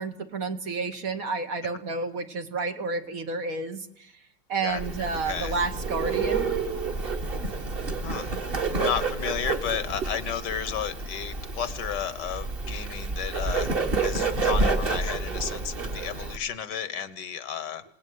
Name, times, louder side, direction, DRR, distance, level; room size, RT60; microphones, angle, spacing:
voice 1, 0.0-4.1 4.5-6.5, right 4 dB, 50° right, 8 dB, 1.5 m, -30 dB
voice 2, 4.6-5.6 8.0-8.3 8.7-13.7 14.0-17.8, left 8 dB, 65° left, 15 dB, 1.7 m, -33 dB
Bird, 4.8-16.4, right 3 dB, 30° right, 1.6 m, -29 dB
26.5 x 18.5 x 9.4 m, 0.81 s
omnidirectional pair, 2.0 m